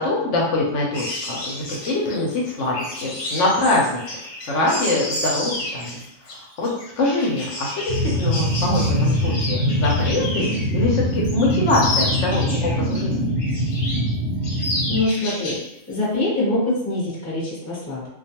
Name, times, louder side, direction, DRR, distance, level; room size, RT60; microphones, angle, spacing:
voice 1, 0.0-4.0 4.5-6.7 7.0-13.3, left 2 dB, 70° left, -3 dB, 0.9 m, -24 dB
sound 1, 0.9-10.7 11.1-13.0 13.4-14.1 14.4-15.7 15.9-16.2, left 1 dB, 90° left, 1.2 m, -31 dB
sound 2, 7.9-15.0, equal, 65° right, 0.7 m, -23 dB
voice 2, 14.9-15.6 15.9-18.1, left 2 dB, 15° left, -6 dB, 0.6 m, -24 dB
2.4 x 2.2 x 2.8 m, 0.80 s
omnidirectional pair, 1.4 m